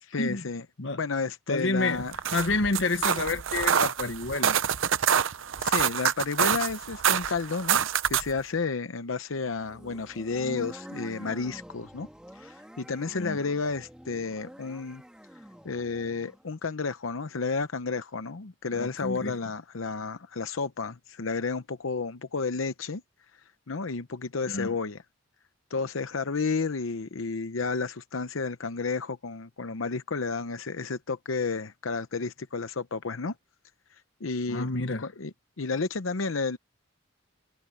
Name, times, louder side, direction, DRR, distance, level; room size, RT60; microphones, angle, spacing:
voice 1, 0.0-0.6 1.0-2.1 5.6-7.8 8.1-12.1 12.3-15.0 15.6-23.0 23.7-25.0 25.7-33.3 34.2-34.7 35.0-36.6, left 4 dB, 90° left, 0.8 m, -31 dB
voice 2, 1.5-2.0 2.3-4.6 13.2-13.4 18.7-19.4 24.5-24.7 34.5-35.1, left 3 dB, 70° left, 1.2 m, -29 dB
sound 1, 2.0-8.4, right 8 dB, 75° right, 0.7 m, -26 dB
sound 2, 9.6-16.4, equal, 5° right, 2.1 m, -46 dB
head